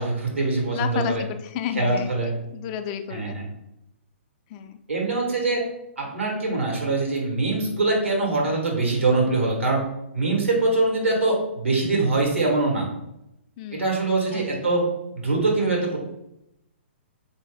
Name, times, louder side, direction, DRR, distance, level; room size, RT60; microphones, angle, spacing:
voice 1, 0.0-1.2 1.7-2.3 3.1-3.4 4.9-5.6 6.0-9.8 10.1-12.9 13.8-14.8 15.1-16.0, right 3 dB, 90° right, -1 dB, 1.4 m, -23 dB
voice 2, 0.7-3.4 4.5-4.8 13.6-14.0 14.3-14.7, left 8 dB, 35° left, 8 dB, 0.3 m, -32 dB
3.8 x 2.7 x 3.4 m, 0.86 s
hypercardioid pair, 125°, 7 cm